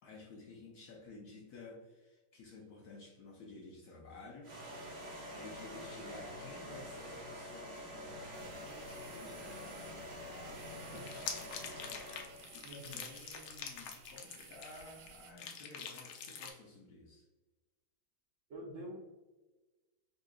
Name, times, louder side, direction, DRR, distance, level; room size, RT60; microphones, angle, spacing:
voice 1, 0.0-4.9 5.3-17.3, left 2 dB, 70° left, -1 dB, 0.9 m, -53 dB
sound 1, 4.4-12.6, equal, 40° right, 1.5 m, -47 dB
sound 2, 8.3-15.3, right 7 dB, 90° right, 1.4 m, -58 dB
sound 3, 11.0-15.1 15.4-16.5, left 6 dB, 90° left, 1.4 m, -45 dB
voice 2, 12.6-13.0 18.5-19.0, equal, 70° right, -4 dB, 0.7 m, -47 dB
4.0 x 2.8 x 2.3 m, 1.2 s
omnidirectional pair, 2.1 m